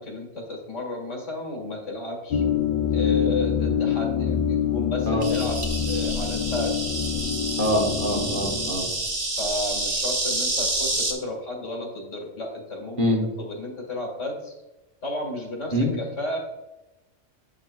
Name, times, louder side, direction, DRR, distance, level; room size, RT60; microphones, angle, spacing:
voice 1, 0.0-2.4 2.9-5.6 5.9-7.0 9.3-13.0 13.4-14.5 15.0-16.4, left 1 dB, 75° left, 0 dB, 2.1 m, -32 dB
sound 1, 2.3-8.7, left 8 dB, 50° left, 0.7 m, -25 dB
Insect, 5.2-11.1, right 2 dB, 30° right, 0.8 m, -28 dB
voice 2, 7.6-8.9 13.0-13.2 15.7-15.9, equal, 45° right, 0 dB, 1.2 m, -24 dB
9.0 x 6.2 x 2.3 m, 1.0 s
omnidirectional pair, 1.3 m